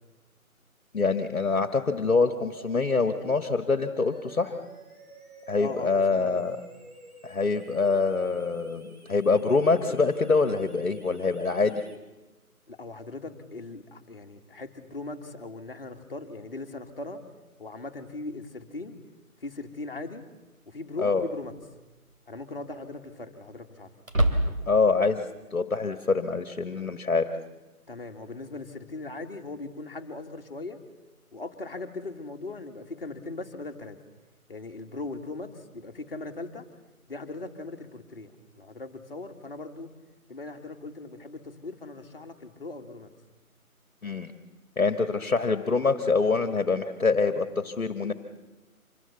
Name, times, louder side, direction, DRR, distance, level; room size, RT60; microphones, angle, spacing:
voice 1, 0.9-4.6 5.5-6.6 7.2-11.8 21.0-21.2 24.7-25.3 25.5-27.3 44.0-44.3 44.8-48.1, left 4 dB, 60° left, 9 dB, 1.7 m, -25 dB
sound 1, 2.0-12.0, right 1 dB, 85° right, 4.7 m, -50 dB
voice 2, 5.6-6.5 12.7-17.2 17.6-19.0 19.4-20.2 20.7-21.5 22.3-23.9 27.9-30.8 31.3-34.0 34.5-36.7 37.1-39.9 40.3-43.1, left 3 dB, 40° left, 5 dB, 2.0 m, -39 dB
sound 2, 19.4-19.5 21.3-21.8 22.1-22.2 24.0-24.9, right 1 dB, 60° right, 3.3 m, -26 dB
26.0 x 21.0 x 7.0 m, 1.1 s
figure-of-eight pair, 155°, 44 cm